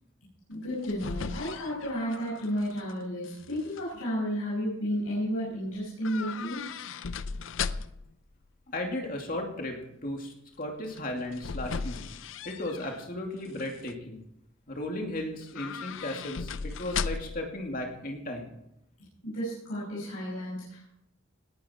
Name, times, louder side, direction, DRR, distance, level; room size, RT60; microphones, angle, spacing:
voice 1, 0.5-6.7 19.2-20.9, equal, 90° left, -7 dB, 5.7 m, -32 dB
sound 1, 0.5-2.9 3.2-3.8 6.0-8.1 10.9-13.0 13.5-13.9 15.4-17.5 17.8-17.9, left 5 dB, 65° left, 0.5 m, -37 dB
voice 2, 8.7-12.0 12.4-14.2 14.7-18.5, left 1 dB, 40° left, 1 dB, 2.5 m, -35 dB
19.0 x 9.7 x 4.5 m, 0.81 s
head